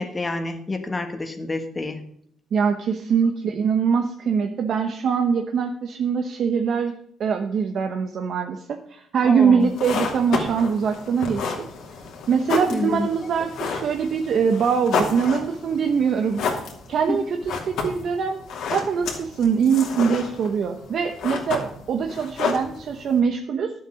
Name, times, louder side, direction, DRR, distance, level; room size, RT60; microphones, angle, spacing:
voice 1, 0.0-2.0 9.2-9.7 12.7-13.1 17.1-17.2, left 2 dB, 20° left, 6 dB, 1.4 m, -27 dB
voice 2, 2.5-6.9 7.2-11.5 12.3-18.4 18.7-23.7, right 6 dB, 55° right, 5 dB, 1.0 m, -23 dB
sound 1, 9.6-23.2, left 5 dB, 75° left, 2.7 m, -31 dB
11.5 x 7.5 x 6.3 m, 0.67 s
cardioid pair, 115°, 0 cm